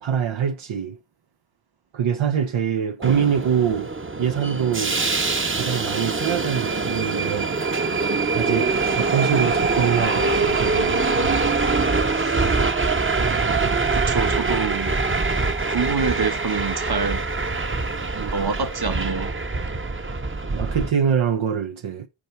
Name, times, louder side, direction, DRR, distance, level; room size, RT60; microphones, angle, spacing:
voice 1, 0.0-1.0 1.9-3.9 4.2-5.0 5.5-7.5 8.3-11.4 20.5-22.1, right 8 dB, 80° right, 0.8 m, -24 dB
Subway metro underground, 3.0-20.9, right 3 dB, 25° right, 0.8 m, -23 dB
voice 2, 12.1-12.5 13.2-15.0 15.7-17.3 18.1-19.3, right 5 dB, 50° right, 1.3 m, -27 dB
8.6 x 4.6 x 4.4 m
cardioid pair, 40°, 47 cm